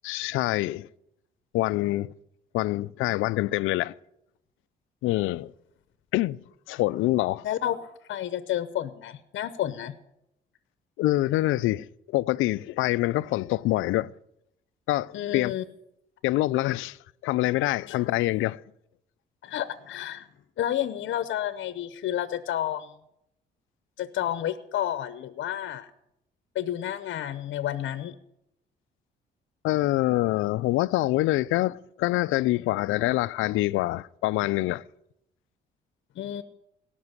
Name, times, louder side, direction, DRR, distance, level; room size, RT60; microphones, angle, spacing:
voice 1, 0.0-0.9 1.5-2.1 2.5-3.9 5.0-5.5 6.1-6.4 6.7-7.5 11.0-14.1 14.9-15.5 16.2-17.0 17.2-18.6 29.6-34.8, left 17 dB, 90° left, 0.4 m, -25 dB
voice 2, 7.4-10.0 15.1-15.6 19.4-20.3 20.6-22.9 24.0-25.9 26.5-28.2 36.2-36.4, left 11 dB, 70° left, 0.8 m, -30 dB
18.0 x 6.1 x 9.6 m
cardioid pair, 90°, 20 cm